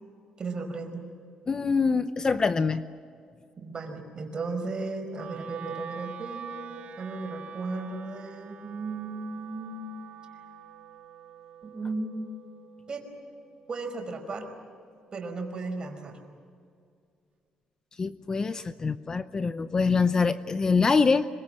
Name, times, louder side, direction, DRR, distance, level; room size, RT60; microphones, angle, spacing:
voice 1, 0.4-1.1 3.6-10.0 11.6-12.3 12.9-13.1 13.7-14.5 15.1-16.2, right 3 dB, 35° right, 4 dB, 5.0 m, -35 dB
voice 2, 1.5-2.8 18.0-21.3, left 4 dB, 30° left, 12 dB, 0.7 m, -24 dB
Wind instrument woodwind instrument, 5.1-15.3, right 7 dB, 65° right, 2.4 m, -46 dB
25.5 x 24.0 x 7.7 m, 2.2 s
cardioid pair, 120°, 2 cm